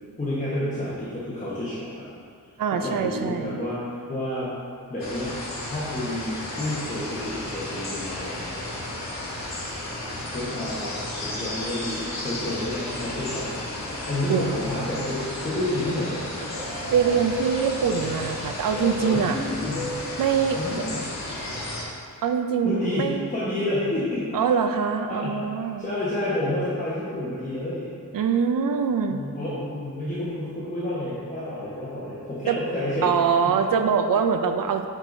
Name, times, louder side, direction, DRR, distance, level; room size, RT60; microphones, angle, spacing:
voice 1, 0.2-2.1 2.7-4.5 4.9-5.3 5.6-8.7 10.3-13.5 14.1-16.3 19.0-19.8 20.6-21.1 22.6-24.3 25.1-25.4 25.8-27.9 29.1-33.1 33.4-33.6, left 1 dB, 20° left, -11 dB, 1.1 m, -29 dB
voice 2, 2.6-3.6 14.3-14.6 16.9-19.4 20.2-20.6 22.2-23.3 24.3-25.9 28.1-29.2 32.5-32.6 33.0-34.9, right 6 dB, 75° right, 7 dB, 0.5 m, -23 dB
sound 1, 5.0-21.8, left 1 dB, 50° left, 1.4 m, -33 dB
8.7 x 4.7 x 2.6 m, 2.2 s
wide cardioid pair, 125°, 34 cm